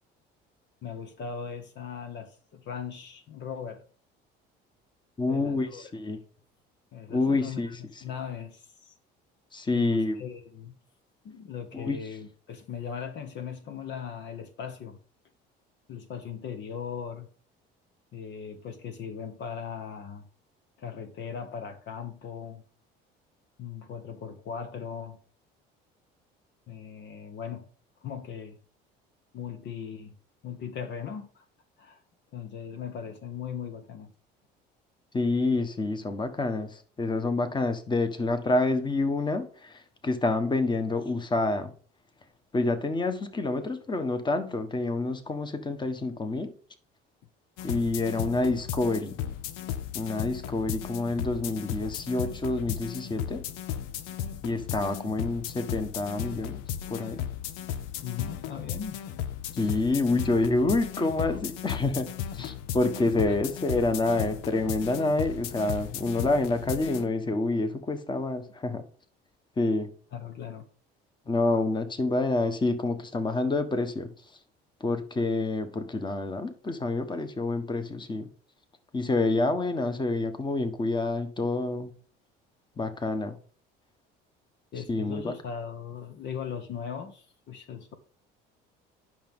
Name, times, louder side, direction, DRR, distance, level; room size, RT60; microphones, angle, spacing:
voice 1, 0.8-3.8 5.2-5.9 6.9-8.9 9.7-10.8 11.2-15.0 15.9-17.3 18.1-20.3 20.8-22.6 23.6-25.2 26.7-27.7 28.0-28.6 29.3-30.1 30.4-31.4 31.8-32.0 32.3-34.1 58.0-59.0 62.4-62.6 63.3-63.4 70.1-70.7 79.5-79.6 84.7-88.0, left 7 dB, 55° left, 1.1 m, -39 dB
voice 2, 5.2-6.2 7.1-7.7 9.5-10.2 11.7-12.0 35.1-36.7 37.0-39.7 40.0-41.7 42.5-46.5 47.6-49.1 49.9-53.4 54.4-56.6 56.9-57.2 59.6-62.1 62.4-68.8 69.6-69.9 71.3-74.1 74.8-78.3 78.9-81.9 82.8-83.3 84.9-85.3, left 2 dB, 20° left, 1.4 m, -27 dB
sound 1, 47.6-67.1, left 9 dB, 85° left, 0.7 m, -35 dB
10.0 x 6.1 x 3.8 m
supercardioid pair, 90°, 21 cm